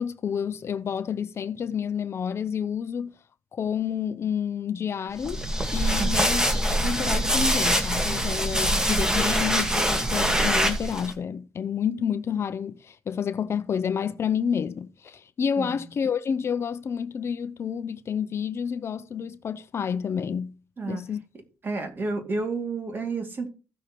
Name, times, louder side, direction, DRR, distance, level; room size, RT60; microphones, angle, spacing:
voice 1, 0.0-3.1 3.5-5.5 5.7-20.5 20.9-21.2, left 7 dB, 50° left, 0.5 m, -29 dB
sound 1, 5.2-11.1, right 1 dB, 10° right, 1.9 m, -24 dB
voice 2, 6.0-6.4 15.6-15.9 20.8-21.0 21.6-23.5, right 3 dB, 40° right, 2.5 m, -31 dB
15.5 x 6.4 x 3.0 m
cardioid pair, 80°, 6 cm